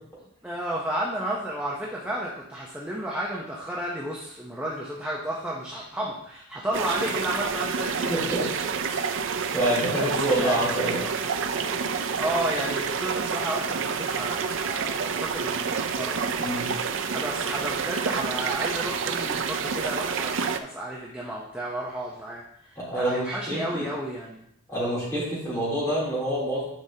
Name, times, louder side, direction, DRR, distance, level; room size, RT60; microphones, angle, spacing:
voice 1, 0.4-8.4 9.9-10.1 10.4-10.7 11.0-11.4 11.9-24.5, right 1 dB, 5° right, -4 dB, 0.7 m, -32 dB
sound 1, 6.7-20.6, right 6 dB, 60° right, 0.5 m, -28 dB
voice 2, 8.1-8.4 8.9-9.0 9.5-11.0 16.4-16.7 22.8-23.9 24.7-26.6, right 1 dB, 15° left, -7 dB, 3.2 m, -27 dB
10.5 x 5.2 x 2.8 m, 0.75 s
head